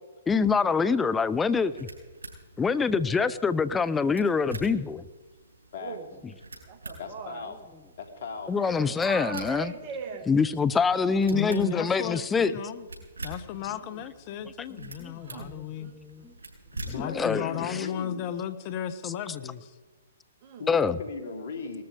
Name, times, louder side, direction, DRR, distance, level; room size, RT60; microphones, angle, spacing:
voice 1, 0.3-1.9 2.6-5.0 8.5-9.7 10.3-12.5 14.8-15.1 15.4-15.5 15.9-16.3 17.0-17.9 19.0-19.1 20.7-21.0, left 5 dB, 10° left, 14 dB, 0.6 m, -25 dB
sound 1, 1.3-17.2, right 2 dB, 80° right, 6.6 m, -46 dB
voice 2, 5.8-6.3 6.7-7.5 8.6-10.3 11.3-11.6 13.8-14.0 15.1-16.3 20.4-20.7, right 5 dB, 40° right, 7 dB, 2.0 m, -41 dB
voice 3, 7.0-7.6 8.0-8.5 16.9-18.3 20.6-21.8, left 4 dB, 60° left, 6 dB, 3.0 m, -38 dB
voice 4, 11.3-12.9 13.2-15.9 16.7-19.7, left 10 dB, 40° left, 13 dB, 1.1 m, -35 dB
19.5 x 13.5 x 5.2 m, 1.3 s
hypercardioid pair, 125°, 0 cm